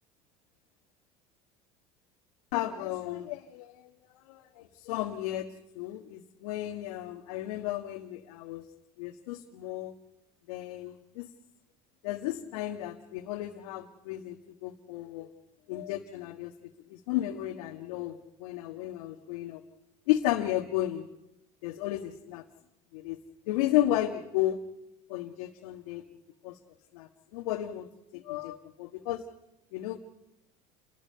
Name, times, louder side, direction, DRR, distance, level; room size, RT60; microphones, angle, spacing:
voice 1, 2.5-3.9 4.1-8.7 9.0-9.9 10.5-11.3 12.0-15.3 15.7-16.5 16.9-19.6 20.1-21.1 21.6-22.4 22.9-23.2 23.5-24.6 25.1-26.1 26.4-26.6 26.9-27.9 28.1-29.2 29.7-30.0, left 14 dB, 75° left, 2 dB, 1.6 m, -33 dB
29.5 x 20.5 x 5.7 m, 0.89 s
hypercardioid pair, 85°, 19 cm